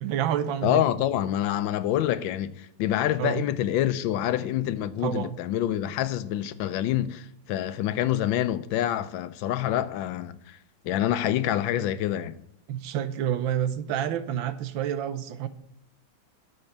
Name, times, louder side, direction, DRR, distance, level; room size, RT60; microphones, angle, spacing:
voice 1, 0.0-0.9 3.2-3.4 5.0-5.4 12.7-15.5, right 10 dB, 85° right, 1.4 m, -28 dB
voice 2, 0.6-10.6 10.8-12.3, left 12 dB, 85° left, 1.3 m, -26 dB
12.0 x 4.4 x 6.8 m
omnidirectional pair, 2.1 m